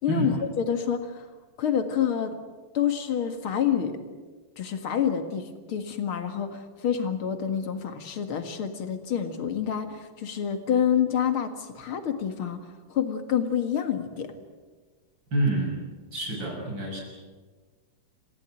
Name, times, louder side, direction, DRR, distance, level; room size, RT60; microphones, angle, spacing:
voice 1, 0.0-1.3 1.6-2.4 2.7-4.0 4.6-12.6 12.9-14.3, left 8 dB, 70° left, 7 dB, 2.7 m, -27 dB
voice 2, 15.3-15.8 16.1-17.0, right 2 dB, 55° right, 0 dB, 7.1 m, -27 dB
28.0 x 15.5 x 9.2 m, 1.4 s
omnidirectional pair, 2.4 m